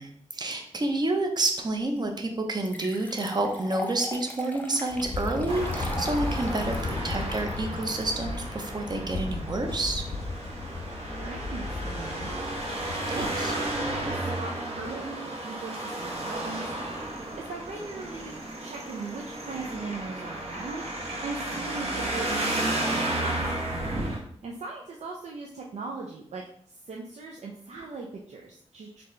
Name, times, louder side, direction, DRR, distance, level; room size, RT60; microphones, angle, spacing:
voice 1, 0.0-10.0 13.1-13.5 24.0-24.2, right 2 dB, 40° right, 4 dB, 0.6 m, -29 dB
sound 1, 2.0-2.1 2.6-8.9, left 1 dB, 15° left, 0.5 m, -40 dB
sound 2, 4.9-14.1, left 3 dB, 75° left, 0.5 m, -35 dB
Traffic noise roadway noise, 5.5-24.2, right 1 dB, 65° right, 0.9 m, -33 dB
voice 2, 11.0-12.5 13.1-16.8 17.1-20.9 21.2-23.5 24.4-29.0, right 3 dB, 85° right, -1 dB, 0.5 m, -39 dB
4.1 x 3.3 x 3.1 m, 0.64 s
wide cardioid pair, 135°, 11 cm